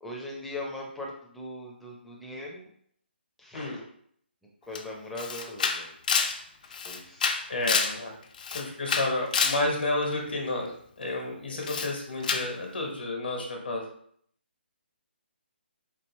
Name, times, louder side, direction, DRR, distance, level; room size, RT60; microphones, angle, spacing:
voice 1, 0.0-2.7 3.4-3.8 4.7-5.9 6.6-7.3 11.5-11.7, left 1 dB, ahead, -4 dB, 0.6 m, -40 dB
Camera, 4.8-4.9 5.2-8.0 8.3-9.6 11.6-11.9 12.2-12.5, left 5 dB, 45° left, 0.4 m, -28 dB
voice 2, 7.5-8.1 8.5-10.7 11.0-13.8, left 2 dB, 60° left, 0 dB, 1.3 m, -30 dB
4.6 x 2.7 x 3.1 m, 0.64 s
figure-of-eight pair, 145°, 6 cm